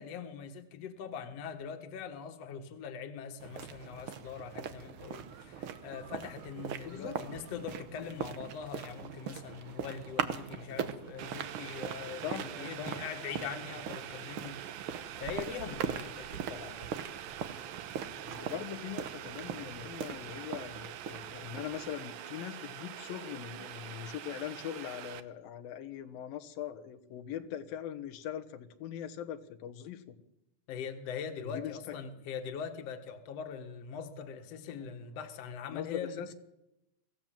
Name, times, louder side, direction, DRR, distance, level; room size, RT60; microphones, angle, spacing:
voice 1, 0.0-14.7 15.2-16.9 30.7-36.2, left 7 dB, 55° left, 2.4 m, -42 dB
sound 1, 3.4-22.0, right 8 dB, 90° right, 1.1 m, -41 dB
voice 2, 6.8-7.2 12.2-12.5 12.8-12.9 18.3-30.2 31.4-31.8 35.7-36.3, left 10 dB, 90° left, 3.0 m, -41 dB
Boiling, 11.2-25.2, right 11 dB, 70° right, 1.8 m, -45 dB
24.5 x 15.5 x 7.5 m
omnidirectional pair, 4.0 m